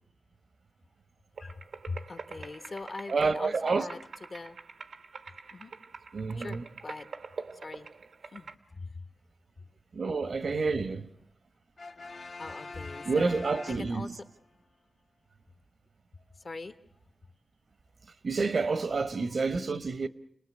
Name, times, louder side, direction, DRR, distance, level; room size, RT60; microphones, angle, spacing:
sound 1, 1.4-8.5, right 4 dB, 85° right, 1.2 m, -46 dB
voice 1, 1.9-4.6 5.5-5.7 6.4-7.1 7.6-7.9 8.3-8.5 8.8-8.9 12.4-13.3 13.6-14.2 16.4-16.8 19.2-19.3, left 3 dB, 50° left, 1.4 m, -41 dB
voice 2, 3.1-3.9 6.1-6.6 9.9-11.1 13.1-14.1 18.2-20.1, right 4 dB, 65° right, 1.1 m, -29 dB
Brass instrument, 11.8-14.4, left 3 dB, 65° left, 1.5 m, -45 dB
30.0 x 20.0 x 8.4 m
wide cardioid pair, 110°, 0 cm